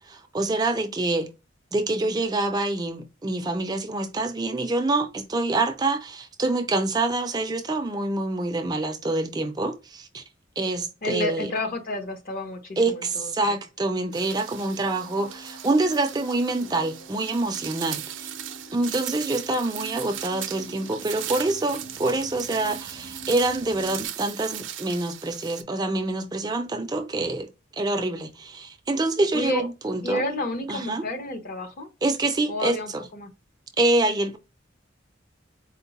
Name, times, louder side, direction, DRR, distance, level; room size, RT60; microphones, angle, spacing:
voice 1, 0.1-1.3 1.7-10.2 10.6-11.5 12.8-18.3 18.7-30.2 30.7-31.1 32.0-33.0 33.8-34.4, right 2 dB, 20° right, 0.4 m, -26 dB
voice 2, 11.0-13.6 29.3-29.6 30.0-31.9 32.5-33.3, left 1 dB, 50° left, 0.9 m, -30 dB
sound 1, 13.8-24.1, right 1 dB, 65° left, 1.7 m, -46 dB
sound 2, 14.1-25.6, right 12 dB, 80° right, 0.5 m, -38 dB
4.4 x 2.1 x 4.0 m
head